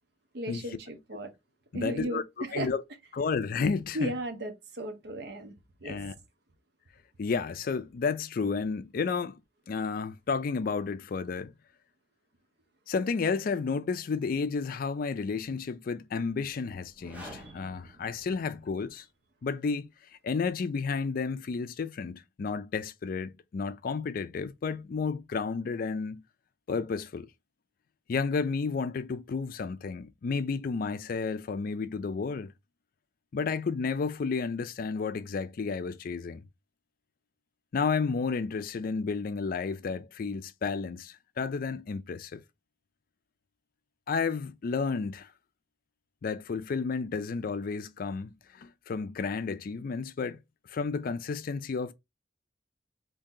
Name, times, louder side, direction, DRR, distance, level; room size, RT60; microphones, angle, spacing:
voice 1, 0.3-1.3 1.7-2.7 3.9-5.5 5.8-6.0, right 1 dB, 65° right, 0.8 m, -35 dB
voice 2, 1.7-2.8 3.1-4.1 5.8-6.1 7.2-9.4 9.7-11.5 12.9-19.0 19.4-19.9 20.2-26.2 26.7-27.3 28.1-32.5 33.3-36.4 37.7-42.4 44.1-45.3 46.2-50.4 50.7-51.9, left 5 dB, 50° left, 0.4 m, -32 dB
sound 1, 16.9-19.0, equal, 10° right, 1.1 m, -49 dB
2.8 x 2.7 x 3.6 m
head